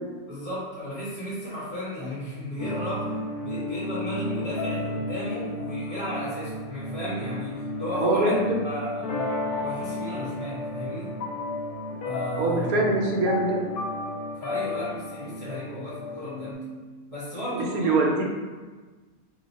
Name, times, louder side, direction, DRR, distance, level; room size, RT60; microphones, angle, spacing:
voice 1, 0.3-3.1 3.4-8.4 8.6-9.3 9.6-11.1 12.0-12.7 14.4-16.6 17.1-18.1, equal, 30° right, -12 dB, 0.7 m, -34 dB
sound 1, 2.6-16.5, left 2 dB, 85° left, 1.1 m, -33 dB
voice 2, 7.9-8.6 12.3-13.6 17.5-18.2, right 2 dB, 80° right, 0 dB, 1.1 m, -24 dB
2.8 x 2.4 x 4.0 m, 1.3 s
omnidirectional pair, 1.5 m